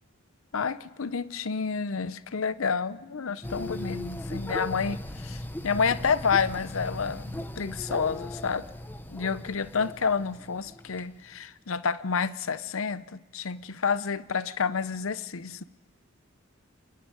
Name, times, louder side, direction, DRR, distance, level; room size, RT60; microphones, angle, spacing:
voice 1, 0.5-8.7 9.1-15.6, left 5 dB, 75° left, 15 dB, 0.7 m, -29 dB
sound 1, 3.4-11.1, left 1 dB, 10° left, 0.8 m, -38 dB
28.5 x 10.0 x 9.6 m, 1.3 s
head